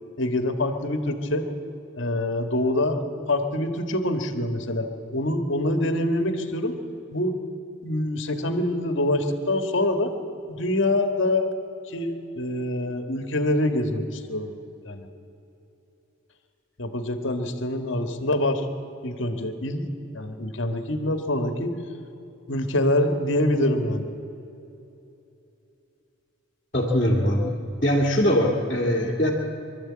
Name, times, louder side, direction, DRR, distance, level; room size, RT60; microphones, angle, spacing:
voice 1, 0.2-1.5 2.0-3.0 3.3-4.9 5.1-6.7 7.1-7.4 7.8-10.1 10.5-11.5 11.9-14.5 14.9-15.1 16.8-18.6 19.0-19.8 20.1-21.7 22.5-24.1, left 1 dB, 60° left, 7 dB, 1.6 m, -25 dB
voice 2, 26.7-27.5 27.8-29.3, equal, 35° left, -4 dB, 2.2 m, -21 dB
24.0 x 12.5 x 8.6 m, 2.9 s
head